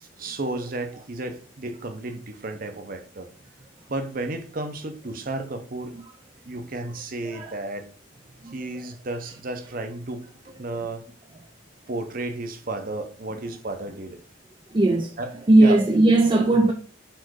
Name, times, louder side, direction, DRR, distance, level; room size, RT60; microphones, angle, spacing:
voice 1, 0.0-3.3 3.9-6.0 6.5-7.9 8.5-11.1 11.9-14.2 15.2-15.3 15.6-15.8, right 2 dB, 45° right, 0.8 m, -33 dB
voice 2, 7.3-7.6 8.4-8.5 14.7-15.2 15.5-16.7, right 2 dB, 25° right, 0.4 m, -18 dB
4.7 x 4.4 x 4.7 m
head